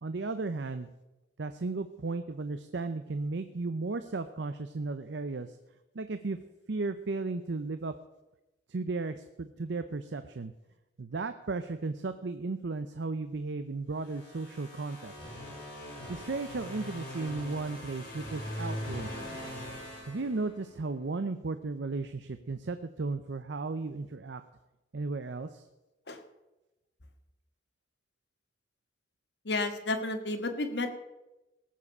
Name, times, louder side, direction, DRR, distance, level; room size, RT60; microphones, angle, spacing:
voice 1, 0.0-0.9 1.4-5.6 5.9-6.4 6.7-7.9 8.7-10.5 11.0-15.4 16.1-19.1 20.1-24.4 24.9-25.7, right 3 dB, 80° right, 10 dB, 0.6 m, -35 dB
sound 1, 13.9-20.8, equal, 55° left, 5.9 m, -41 dB
voice 2, 29.4-30.9, left 2 dB, 70° left, 6 dB, 1.4 m, -31 dB
18.5 x 7.5 x 5.5 m, 1.0 s
head